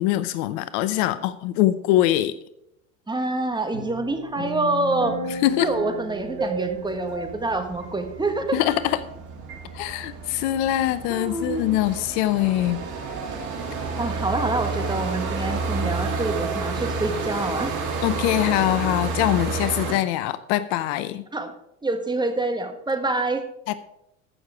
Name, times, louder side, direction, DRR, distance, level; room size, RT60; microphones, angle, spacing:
voice 1, 0.0-2.3 5.4-5.7 8.5-9.0 9.7-12.8 18.0-21.2 23.7-23.8, left 14 dB, 55° left, 15 dB, 0.7 m, -23 dB
voice 2, 3.1-5.2 5.6-8.6 11.1-11.8 14.0-17.7 21.3-21.5 21.8-23.4, right 2 dB, 10° right, 6 dB, 1.5 m, -26 dB
sound 1, 3.7-9.2 9.5-9.7, right 2 dB, 75° right, 3.3 m, -34 dB
sound 2, 6.1-19.9, right 4 dB, 50° right, 3.2 m, -30 dB
15.0 x 6.6 x 4.9 m, 0.80 s
hypercardioid pair, 85°, 40 cm